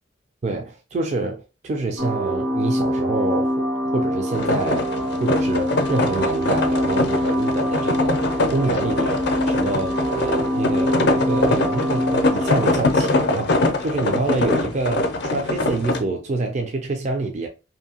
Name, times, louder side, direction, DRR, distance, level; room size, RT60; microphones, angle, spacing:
voice 1, 0.4-3.7 3.9-4.9 5.2-17.5, right 2 dB, 35° right, 0.4 m, -27 dB
sound 1, 2.0-12.8, equal, 80° right, 1.2 m, -24 dB
sound 2, 4.3-16.0, left 2 dB, 60° left, 0.5 m, -23 dB
2.6 x 2.6 x 2.7 m
head